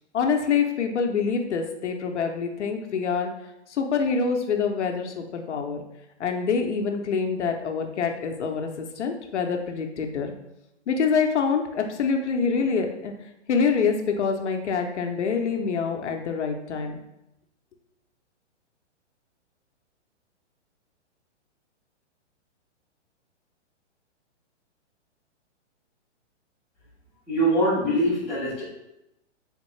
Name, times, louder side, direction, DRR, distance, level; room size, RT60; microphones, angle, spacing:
voice 1, 0.1-3.3 3.7-5.8 6.2-10.3 10.9-13.1 13.5-17.0, left 5 dB, 70° left, 4 dB, 0.6 m, -26 dB
voice 2, 27.3-28.6, right 1 dB, 5° right, -12 dB, 0.9 m, -23 dB
3.6 x 3.6 x 3.1 m, 0.87 s
hypercardioid pair, 180°, 36 cm